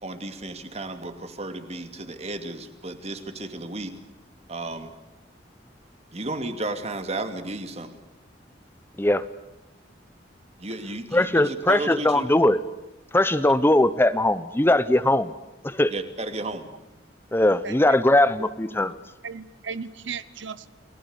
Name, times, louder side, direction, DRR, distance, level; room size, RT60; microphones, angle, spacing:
voice 1, 0.0-4.0 4.5-4.9 6.1-8.0 10.6-12.3 15.9-16.7, right 2 dB, 35° right, 8 dB, 2.6 m, -33 dB
voice 2, 11.1-12.6 13.1-15.3 15.6-15.9 17.3-19.0, left 1 dB, 10° left, 14 dB, 0.8 m, -20 dB
voice 3, 17.6-18.0 18.4-18.5 19.2-20.7, right 5 dB, 80° right, 15 dB, 1.0 m, -36 dB
29.5 x 20.0 x 8.2 m, 1.0 s
head